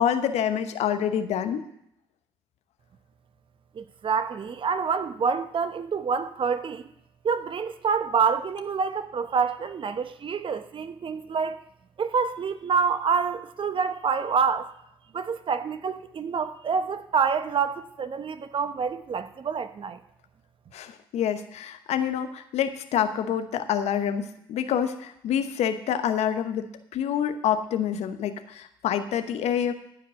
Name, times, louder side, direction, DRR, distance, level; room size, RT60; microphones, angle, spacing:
voice 1, 0.0-1.6 20.7-29.7, left 9 dB, 65° left, 1.0 m, -27 dB
voice 2, 3.7-6.8 7.2-11.6 12.0-14.7 15.1-20.0, right 6 dB, 45° right, 0.9 m, -27 dB
14.0 x 5.1 x 7.8 m
hypercardioid pair, 45°, 12 cm